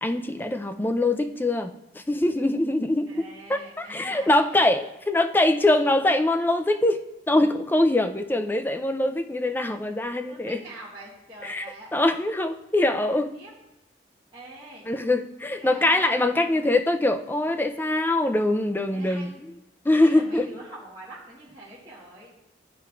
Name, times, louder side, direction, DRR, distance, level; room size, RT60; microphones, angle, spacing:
voice 1, 0.0-1.7 2.1-3.2 3.5-7.0 7.3-10.6 11.4-11.6 11.9-13.4 14.9-19.3 19.9-20.5, left 1 dB, 10° left, 6 dB, 0.3 m, -23 dB
voice 2, 3.1-4.7 10.2-11.9 13.3-13.5 14.3-14.9 15.5-16.4 18.9-19.3 20.0-22.3, right 1 dB, 25° right, -10 dB, 1.5 m, -44 dB
12.0 x 4.5 x 2.3 m, 0.93 s
head